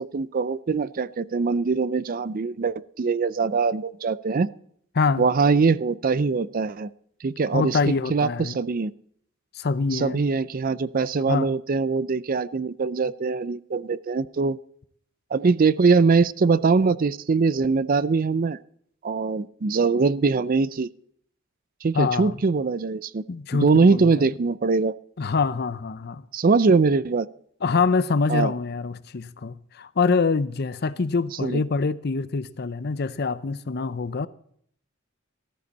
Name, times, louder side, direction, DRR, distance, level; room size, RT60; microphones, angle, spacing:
voice 1, 0.0-4.5 5.2-6.9 7.2-7.8 8.1-8.9 9.9-14.6 15.3-18.6 19.0-20.9 21.8-23.2 23.5-24.9 26.3-27.3 28.3-28.5 31.4-31.6, right 4 dB, 45° right, 0.4 m, -22 dB
voice 2, 5.0-5.3 7.5-8.6 9.5-10.2 11.3-11.5 21.9-22.4 23.3-24.3 25.2-26.2 27.6-34.3, left 4 dB, 50° left, 0.6 m, -25 dB
14.5 x 14.0 x 4.1 m
head